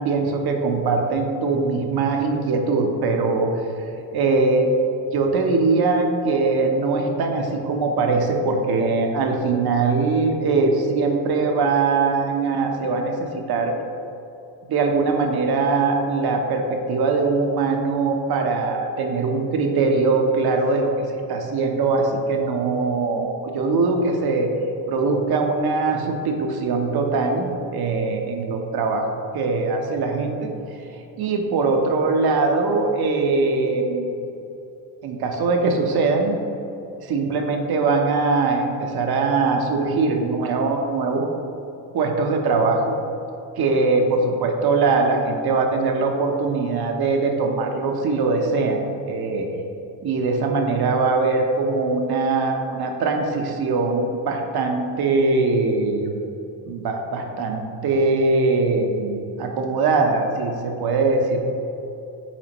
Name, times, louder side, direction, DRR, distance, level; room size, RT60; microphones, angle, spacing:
voice 1, 0.0-3.5 4.1-4.7 5.1-13.7 14.7-24.5 24.9-30.5 31.2-34.1 35.0-36.3 37.0-41.3 41.9-42.9 43.6-49.5 50.0-56.1 56.7-61.4, right 3 dB, 50° right, 3 dB, 1.0 m, -21 dB
8.6 x 4.2 x 3.0 m, 2.8 s
supercardioid pair, 85°, 50 cm